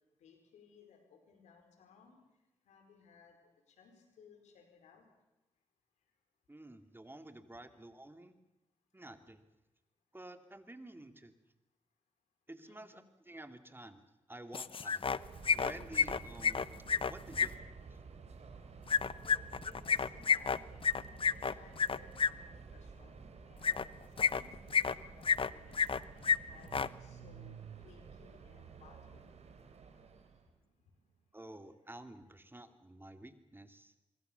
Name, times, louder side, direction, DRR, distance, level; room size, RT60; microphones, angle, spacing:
voice 1, 0.2-2.2 2.7-3.3 3.8-5.0 12.6-13.0 19.2-23.9 24.2-26.7 27.0-27.5 27.8-29.2, left 5 dB, 90° left, 5 dB, 4.7 m, -61 dB
voice 2, 6.5-8.4 8.9-9.4 10.1-11.3 12.5-14.0 14.3-15.1 15.5-16.7 17.1-17.8 31.3-33.9, right 1 dB, 20° right, 8 dB, 2.8 m, -51 dB
sound 1, 14.5-15.2 15.4-17.5 18.9-22.3 23.6-23.8 24.2-24.9 25.2-26.0 26.2-26.4 26.6-26.9, left 6 dB, 50° left, 0.9 m, -30 dB
Subway metro underground, 15.2-30.5, right 5 dB, 70° right, 3.6 m, -52 dB
Car / Engine starting, 24.7-24.8 25.1-30.4, right 10 dB, 85° right, 1.2 m, -55 dB
25.5 x 22.5 x 7.1 m, 0.96 s
supercardioid pair, 45°, 12 cm